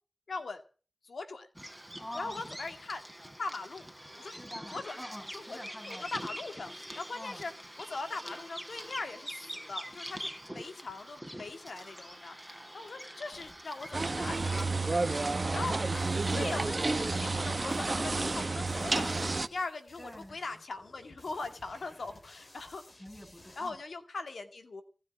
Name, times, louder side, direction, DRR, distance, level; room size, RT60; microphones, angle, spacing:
voice 1, 0.3-0.6 1.0-1.5 2.1-3.0 3.4-3.9 4.2-4.4 4.7-5.0 5.3-5.6 5.9-7.5 7.8-12.4 12.7-14.7 15.5-22.8 23.6-24.8, left 3 dB, 80° left, 7 dB, 2.2 m, -40 dB
Bird vocalization bird call bird song, 1.5-14.7, equal, 5° left, 3.8 m, -45 dB
voice 2, 2.0-2.6 4.3-6.1 7.1-7.4 20.0-20.4 23.0-23.8, left 1 dB, 20° left, 3 dB, 7.9 m, -46 dB
sound 1, 13.3-23.7, left 1 dB, 45° left, 6.3 m, -56 dB
sound 2, 13.9-19.5, right 3 dB, 45° right, 1.0 m, -30 dB
18.5 x 7.2 x 9.2 m, 0.37 s
cardioid pair, 50°, 0 cm